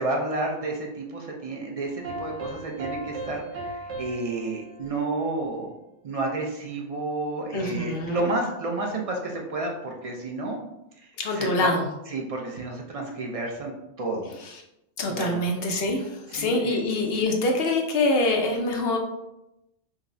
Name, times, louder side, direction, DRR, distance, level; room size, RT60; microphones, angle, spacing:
voice 1, 0.0-5.7 6.0-10.7 11.0-11.7 12.1-13.7 14.0-14.3 15.1-15.4 16.4-16.5, right 2 dB, 55° right, 0 dB, 0.4 m, -31 dB
sound 1, 1.9-6.1, right 2 dB, 85° right, 1.1 m, -38 dB
voice 2, 7.5-8.3 11.2-11.9 14.4-14.6 15.0-19.0, left 2 dB, 65° left, 2 dB, 0.7 m, -25 dB
5.1 x 2.0 x 2.5 m, 0.88 s
omnidirectional pair, 1.2 m